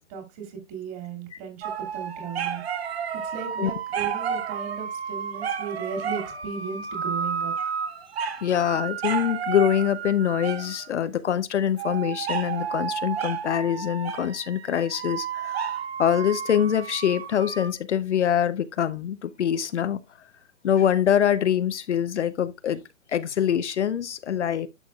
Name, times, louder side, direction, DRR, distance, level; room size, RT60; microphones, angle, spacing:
voice 1, 0.1-2.9 3.2-7.5, right 6 dB, 30° right, 2.4 m, -36 dB
sound 1, 1.6-10.9 11.8-17.7, right 7 dB, 50° right, 1.3 m, -31 dB
voice 2, 8.4-20.0 20.6-22.8 23.1-24.7, left 9 dB, 60° left, 0.7 m, -24 dB
11.0 x 6.1 x 2.3 m
hypercardioid pair, 140°, 40 cm